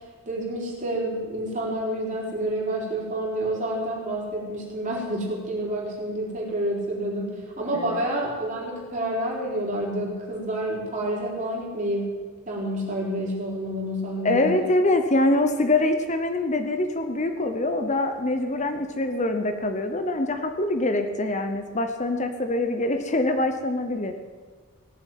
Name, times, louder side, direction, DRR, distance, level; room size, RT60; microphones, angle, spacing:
voice 1, 0.3-12.1 12.5-14.7, right 1 dB, 35° right, -3 dB, 4.1 m, -29 dB
voice 2, 14.2-24.1, left 2 dB, 30° left, 7 dB, 0.8 m, -24 dB
18.0 x 7.5 x 9.2 m, 1.5 s
head